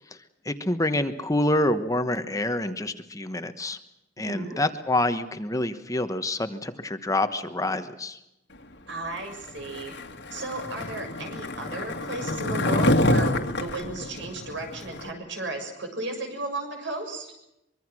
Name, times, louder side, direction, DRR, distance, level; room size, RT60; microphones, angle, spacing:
voice 1, 0.4-3.8 4.2-8.2, left 1 dB, 15° left, 9 dB, 1.2 m, -27 dB
voice 2, 4.3-4.6 8.9-9.9 10.3-17.3, right 2 dB, 75° right, 4 dB, 6.9 m, -34 dB
Skateboard, 9.6-15.1, left 1 dB, 60° left, 1.9 m, -27 dB
24.5 x 23.5 x 6.2 m, 0.86 s
head